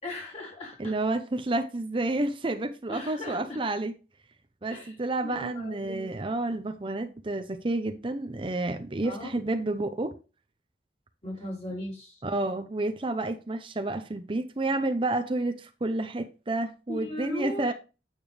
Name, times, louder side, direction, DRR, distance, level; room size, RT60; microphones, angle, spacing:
voice 1, 0.0-1.0 2.9-3.6 4.7-5.0 5.2-6.1 9.0-9.4 11.2-12.2 16.9-17.7, left 1 dB, 40° left, 3.6 m, -38 dB
voice 2, 0.8-3.9 4.6-10.1 12.2-17.7, right 2 dB, 30° right, 0.6 m, -30 dB
9.0 x 6.7 x 3.3 m
head